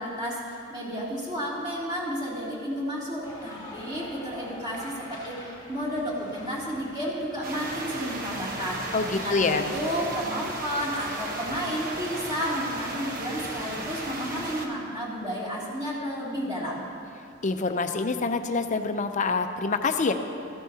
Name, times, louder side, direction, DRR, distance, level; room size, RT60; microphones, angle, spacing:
voice 1, 0.0-16.9, equal, 20° right, -7 dB, 2.7 m, -32 dB
sound 1, 3.2-14.6, left 1 dB, 20° left, 1.4 m, -46 dB
sound 2, 7.4-14.7, right 2 dB, 45° right, 1.1 m, -35 dB
voice 2, 8.9-9.6 17.4-20.1, left 4 dB, 40° left, 7 dB, 0.6 m, -26 dB
14.5 x 12.5 x 2.8 m, 2.8 s
head